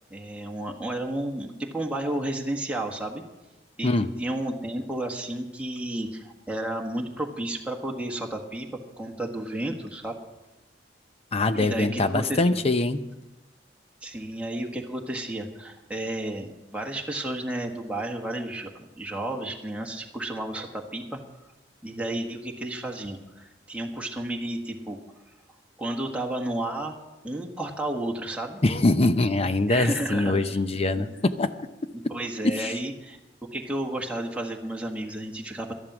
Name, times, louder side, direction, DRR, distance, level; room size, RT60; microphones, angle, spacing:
voice 1, 0.1-3.2 3.8-3.9 4.2-8.7 9.0-10.1 11.5-12.6 14.0-21.2 21.8-25.0 25.8-27.0 27.2-28.6 29.7-31.1 32.1-33.2 33.5-35.7, right 1 dB, 5° right, 1 dB, 1.5 m, -32 dB
voice 2, 11.3-13.0 28.6-31.5 32.6-32.7, left 2 dB, 35° left, 11 dB, 0.7 m, -23 dB
13.0 x 11.0 x 6.1 m, 1.0 s
head